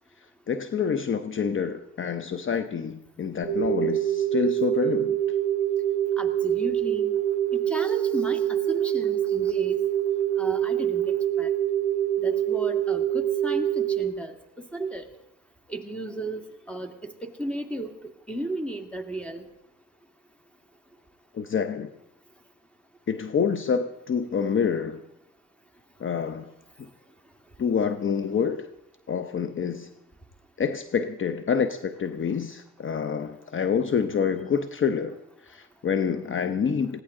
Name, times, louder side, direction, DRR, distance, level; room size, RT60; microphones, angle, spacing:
voice 1, 0.5-5.2 21.3-21.9 23.1-25.0 26.0-26.5 26.8-26.9 27.6-28.7 29.1-29.9 30.6-35.2 35.4-37.0, left 6 dB, 40° left, 10 dB, 0.8 m, -27 dB
sound 1, 3.4-14.0, right 11 dB, 55° right, 0.9 m, -25 dB
voice 2, 6.2-7.2 7.5-9.8 10.4-11.5 12.2-15.0 15.7-17.1 17.4-17.9 18.3-19.5, right 2 dB, 5° left, 6 dB, 1.9 m, -34 dB
20.0 x 16.0 x 3.8 m, 0.85 s
cardioid pair, 90°, 30 cm